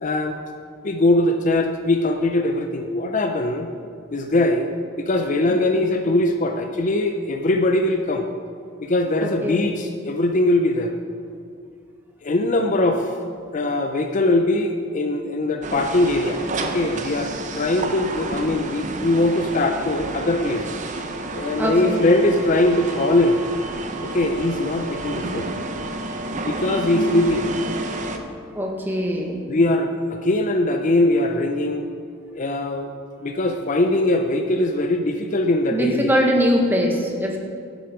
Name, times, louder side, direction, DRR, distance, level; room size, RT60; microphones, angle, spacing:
voice 1, 0.0-0.4 0.8-3.7 4.1-8.3 8.8-10.9 12.2-13.1 13.5-20.7 21.3-23.4 24.0-25.5 26.4-27.5 29.5-31.8 32.3-32.9 33.2-36.1, left 2 dB, 40° left, 5 dB, 0.5 m, -21 dB
voice 2, 5.5-5.9 9.2-9.7 21.6-22.1 28.5-29.4 35.7-37.4, equal, 10° right, 0 dB, 1.3 m, -22 dB
sound 1, 15.6-28.2, right 2 dB, 40° right, 0.7 m, -30 dB
10.5 x 8.0 x 4.9 m, 2.3 s
head